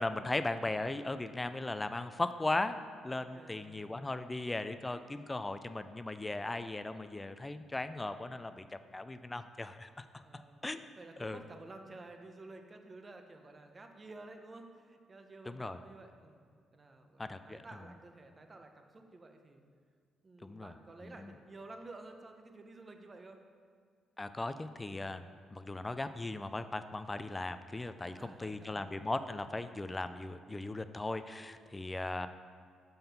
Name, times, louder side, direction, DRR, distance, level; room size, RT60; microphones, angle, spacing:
voice 1, 0.0-2.8 3.0-10.1 10.3-10.9 11.2-11.4 15.5-15.8 17.2-17.6 20.4-20.7 21.0-21.3 24.2-25.2 25.5-32.3, left 2 dB, 15° left, 10 dB, 0.3 m, -38 dB
voice 2, 3.3-3.9 10.2-10.7 11.0-16.4 16.7-19.6 20.2-23.4 28.0-28.9, right 2 dB, 30° right, 5 dB, 0.7 m, -52 dB
5.7 x 5.4 x 5.7 m, 2.1 s
cardioid pair, 90°, 0 cm